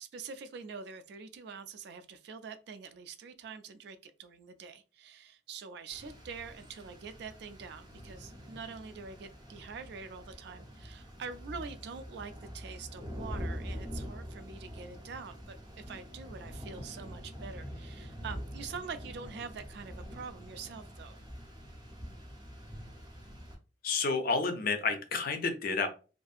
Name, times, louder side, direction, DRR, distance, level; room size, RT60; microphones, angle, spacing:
voice 1, 0.0-21.2, right 5 dB, 60° right, 10 dB, 0.3 m, -45 dB
Rain, 5.9-23.5, equal, 20° right, 0.7 m, -45 dB
voice 2, 23.8-25.9, left 4 dB, 50° left, 7 dB, 0.4 m, -30 dB
2.6 x 2.4 x 2.4 m, 0.34 s
head